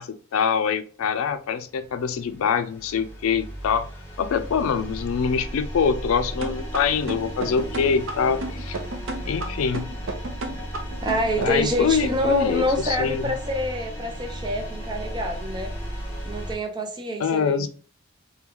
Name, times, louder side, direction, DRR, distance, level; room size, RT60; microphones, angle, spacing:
voice 1, 0.0-3.9 4.2-8.8 9.3-9.9 11.4-13.3 17.2-17.7, left 6 dB, 90° left, 12 dB, 0.4 m, -24 dB
sound 1, 1.6-16.6, equal, 10° left, 0.8 m, -35 dB
sound 2, 6.4-11.8, right 2 dB, 70° right, 0.6 m, -32 dB
voice 2, 11.0-15.7 16.3-17.7, equal, 20° right, 3 dB, 0.5 m, -26 dB
3.0 x 2.3 x 3.4 m, 0.39 s
head